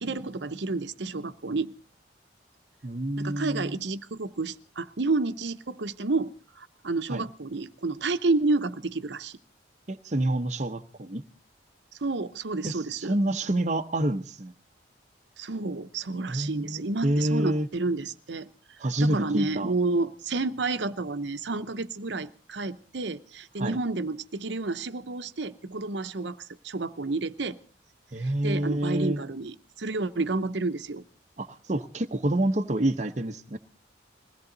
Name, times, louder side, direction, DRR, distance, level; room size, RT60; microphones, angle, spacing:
voice 1, 0.0-1.7 3.2-9.4 12.0-13.1 15.4-27.6 28.2-31.0, right 3 dB, 70° right, 0.8 m, -30 dB
voice 2, 2.8-3.8 7.1-7.2 9.9-11.2 12.6-14.5 16.3-17.7 18.8-19.7 23.6-23.8 28.1-29.2 31.4-33.6, right 1 dB, 40° right, 0.8 m, -28 dB
21.5 x 16.5 x 3.9 m
head